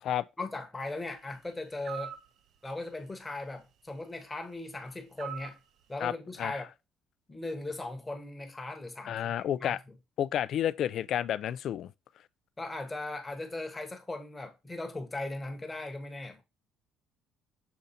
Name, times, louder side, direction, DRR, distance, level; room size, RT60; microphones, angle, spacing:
voice 1, 0.4-2.2 2.6-5.6 5.9-6.7 7.3-9.9 12.6-16.4, left 2 dB, 10° left, 1.1 m, -38 dB
sound 1, 1.8-2.3 5.2-5.6, right 10 dB, 50° right, 0.6 m, -40 dB
voice 2, 9.1-9.8 10.2-11.9, left 10 dB, 50° left, 0.4 m, -30 dB
6.8 x 3.9 x 4.0 m
cardioid pair, 170°, 0 cm